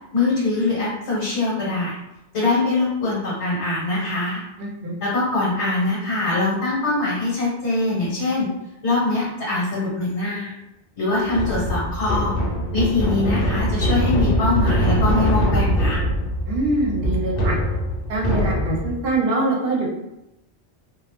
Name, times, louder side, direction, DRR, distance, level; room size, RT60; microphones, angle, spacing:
voice 1, 0.1-2.0 2.3-4.4 5.0-8.5 8.8-10.5 11.0-12.4 12.7-16.0, left 2 dB, 75° left, -6 dB, 1.1 m, -23 dB
voice 2, 4.6-4.9 16.5-17.5 18.1-19.9, right 2 dB, 65° right, -2 dB, 0.8 m, -23 dB
sound 1, 11.3-19.0, equal, 60° left, 0.7 m, -22 dB
2.3 x 2.0 x 2.9 m, 0.91 s
omnidirectional pair, 1.2 m